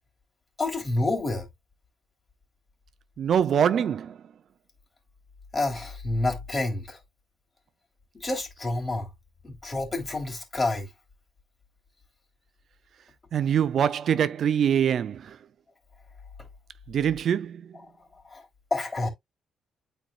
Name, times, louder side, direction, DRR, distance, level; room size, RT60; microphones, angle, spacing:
voice 1, 0.6-1.5 5.5-7.0 8.1-9.1 9.4-10.9 18.3-18.4 18.7-19.1, left 2 dB, 25° left, 3.3 m, -28 dB
voice 2, 3.2-4.2 13.3-15.4 16.9-17.6, right 8 dB, 60° right, 0.5 m, -24 dB
9.0 x 4.4 x 2.4 m
cardioid pair, 90°, 0 cm